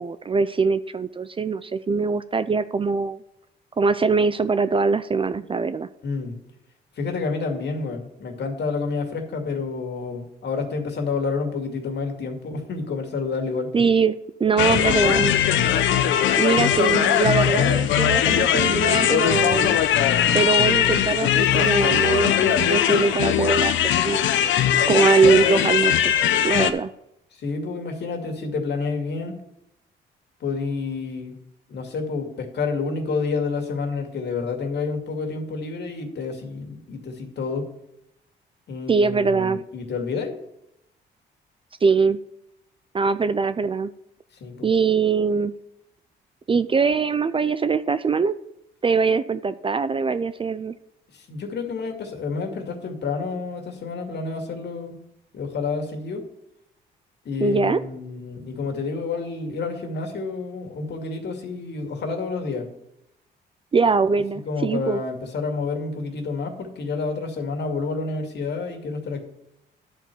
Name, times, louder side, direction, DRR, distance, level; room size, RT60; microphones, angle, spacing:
voice 1, 0.0-3.2 3.8-5.9 13.7-15.3 16.4-19.8 20.3-24.3 24.9-26.1 26.4-26.9 38.9-39.6 41.8-42.2 42.9-43.9 44.6-45.5 46.5-48.4 48.8-50.8 57.4-57.8 63.7-65.0, right 4 dB, 25° right, 13 dB, 0.4 m, -22 dB
voice 2, 6.0-6.4 7.0-13.7 27.3-29.3 30.4-31.4 31.7-37.7 38.7-40.3 44.4-44.7 51.1-55.0 55.3-56.3 57.2-62.7 64.5-69.3, left 4 dB, 60° left, 3 dB, 2.1 m, -29 dB
sound 1, 14.6-26.7, left 10 dB, 75° left, 0.7 m, -20 dB
11.0 x 4.5 x 6.8 m, 0.82 s
cardioid pair, 80°, 20 cm